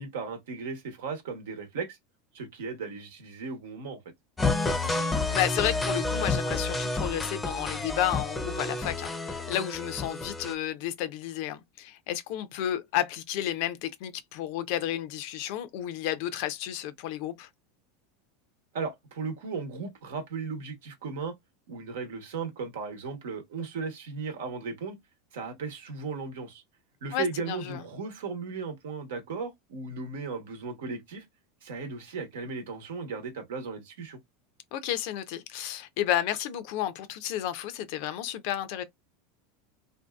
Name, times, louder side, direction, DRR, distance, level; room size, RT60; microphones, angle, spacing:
voice 1, 0.0-2.0 2.3-4.0 18.7-21.4 21.7-25.0 25.3-26.6 27.0-31.3 31.6-34.2, right 4 dB, 80° right, 0.9 m, -36 dB
sound 1, 4.4-10.5, left 3 dB, 15° left, 0.6 m, -30 dB
voice 2, 4.8-17.5 27.1-27.8 34.7-38.8, left 11 dB, 65° left, 0.5 m, -32 dB
2.7 x 2.3 x 2.2 m
hypercardioid pair, 105°, 0 cm